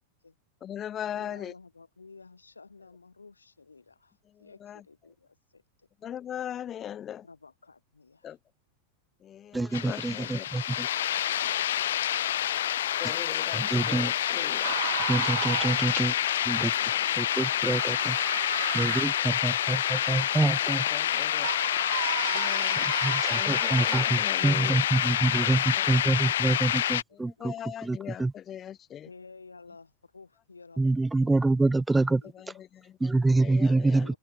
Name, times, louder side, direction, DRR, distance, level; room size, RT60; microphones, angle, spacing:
voice 1, 0.6-1.5 4.3-4.8 6.0-7.2 8.2-8.4 9.2-10.5 13.0-14.7 16.5-17.0 20.9-21.5 22.2-22.9 23.4-24.8 27.1-29.1 32.4-34.1, left 10 dB, 25° left, 0.7 m, -40 dB
voice 2, 1.1-5.9 7.2-8.4 9.5-10.6 10.9-12.8 14.2-15.1 17.0-18.0 21.0-21.7 24.3-25.7 27.2-27.6 29.0-30.8 31.1-32.3 33.9-34.2, left 4 dB, 80° left, 5.8 m, -54 dB
voice 3, 9.5-10.9 13.5-14.1 15.1-16.1 16.4-16.7 17.2-18.2 18.7-20.9 22.8-27.5 27.8-28.3 30.8-32.2 33.0-34.1, right 2 dB, 10° right, 1.3 m, -26 dB
sound 1, 9.7-27.0, left 11 dB, 60° left, 1.5 m, -27 dB
sound 2, 14.6-16.3 17.3-24.0, right 16 dB, 55° right, 2.9 m, -36 dB
open air
figure-of-eight pair, 90°, 0 cm